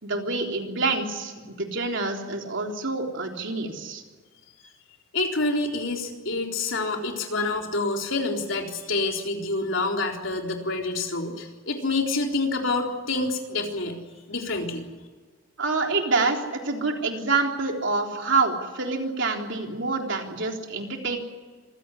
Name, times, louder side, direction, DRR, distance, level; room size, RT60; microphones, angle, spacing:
voice 1, 0.0-4.0 15.6-21.2, right 3 dB, 65° right, 2 dB, 3.8 m, -27 dB
voice 2, 5.1-14.0 14.3-14.8, left 3 dB, 70° left, 2 dB, 4.0 m, -27 dB
26.5 x 16.0 x 9.9 m, 1.5 s
head